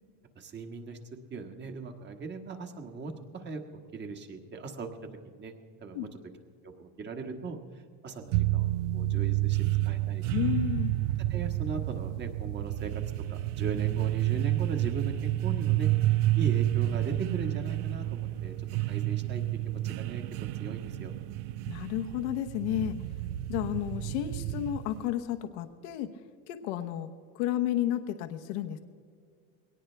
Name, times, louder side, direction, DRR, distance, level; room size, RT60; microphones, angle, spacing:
voice 1, 0.3-1.0 1.3-4.9 5.2-5.5 5.8-6.4 6.6-10.2 11.3-13.0 13.3-18.5 18.8-20.2 20.6-21.1, right 4 dB, 30° right, 5 dB, 1.6 m, -39 dB
sound 1, 8.3-25.1, right 15 dB, 70° right, 0.6 m, -30 dB
voice 2, 10.3-11.0 21.7-23.0 23.5-26.1 26.5-27.1 27.3-28.8, left 12 dB, 85° left, 7 dB, 1.0 m, -32 dB
22.0 x 18.0 x 3.4 m, 2.2 s
cardioid pair, 135°, 35 cm